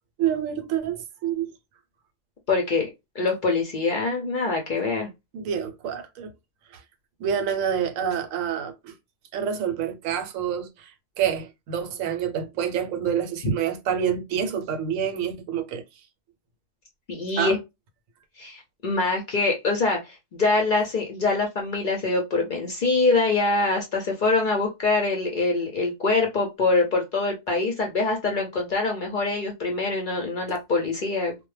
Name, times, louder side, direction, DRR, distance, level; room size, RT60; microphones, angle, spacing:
voice 1, 0.2-1.5 5.3-6.3 6.7-6.8 7.2-8.9 9.3-10.9 11.2-15.8 17.4-17.6, right 8 dB, 90° right, 1.0 m, -27 dB
voice 2, 2.5-2.9 3.1-5.1 17.1-17.6 18.4-31.4, left 3 dB, 55° left, 0.6 m, -24 dB
2.1 x 2.1 x 3.1 m
omnidirectional pair, 1.3 m